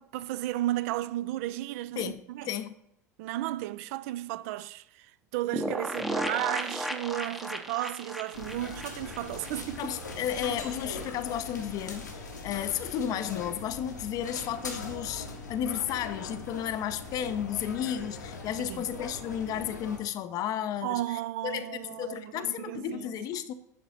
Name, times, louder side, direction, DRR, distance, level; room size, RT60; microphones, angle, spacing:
voice 1, 0.0-2.5 3.2-9.9 18.7-18.8 20.8-23.1, right 15 dB, 55° right, 0.4 m, -34 dB
voice 2, 2.0-2.7 9.8-23.5, left 9 dB, 45° left, 0.5 m, -33 dB
sound 1, 5.5-10.1 10.4-10.5 10.7-10.8, equal, ahead, 0.7 m, -35 dB
sound 2, 8.3-20.0, left 3 dB, 85° left, 1.3 m, -41 dB
9.9 x 3.9 x 4.3 m
figure-of-eight pair, 75°, 9 cm